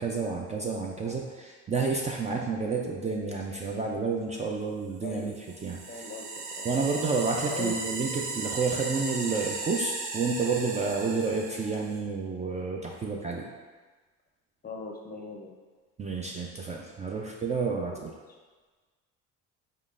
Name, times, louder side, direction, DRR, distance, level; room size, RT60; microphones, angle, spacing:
voice 1, 0.0-5.3 5.6-6.0 6.6-13.5 16.0-18.1, right 4 dB, 20° right, -1 dB, 0.4 m, -30 dB
sound 1, 5.2-12.0, right 3 dB, 80° right, 0.7 m, -36 dB
voice 2, 5.9-6.3 6.6-6.7 7.5-7.8 8.3-8.4 14.6-15.5 17.9-18.1, left 4 dB, 25° left, 1 dB, 0.6 m, -39 dB
4.3 x 3.7 x 2.5 m, 1.4 s
supercardioid pair, 90°, 34 cm